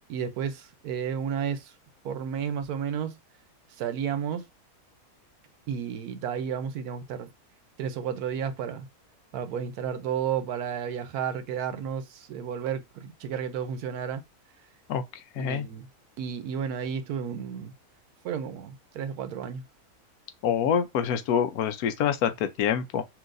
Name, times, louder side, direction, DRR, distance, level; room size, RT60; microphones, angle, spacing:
voice 1, 0.0-1.7 2.0-3.2 3.8-4.5 5.7-7.3 7.8-8.9 9.3-14.2 15.4-15.9 16.2-17.7 18.2-19.6, right 8 dB, 80° right, 1.1 m, -32 dB
voice 2, 15.4-15.7 20.4-23.0, left 8 dB, 80° left, 1.1 m, -26 dB
5.9 x 2.7 x 2.5 m
omnidirectional pair, 1.6 m